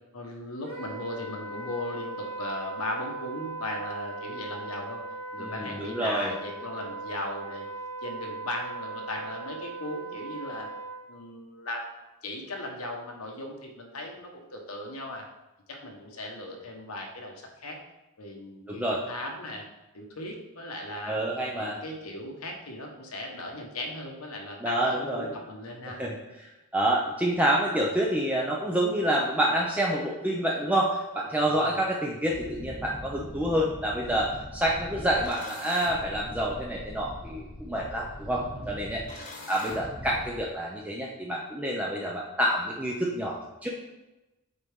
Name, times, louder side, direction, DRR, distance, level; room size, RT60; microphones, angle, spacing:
voice 1, 0.1-5.0 5.3-7.7 8.0-10.7 11.1-11.9 12.2-15.2 15.7-17.8 18.2-19.6 19.9-21.2 21.5-26.0 31.4-31.7 38.6-38.7, left 1 dB, 85° left, 1 dB, 1.3 m, -37 dB
Wind instrument woodwind instrument, 0.6-11.0, right 3 dB, 60° right, 2.0 m, -39 dB
voice 2, 5.4-6.3 18.7-19.0 21.1-21.8 24.6-25.3 26.0-26.2 26.4-43.7, right 1 dB, 5° right, -3 dB, 0.6 m, -28 dB
sound 1, 32.3-40.4, left 1 dB, 35° left, 1.2 m, -42 dB
7.9 x 4.6 x 3.7 m, 1.0 s
head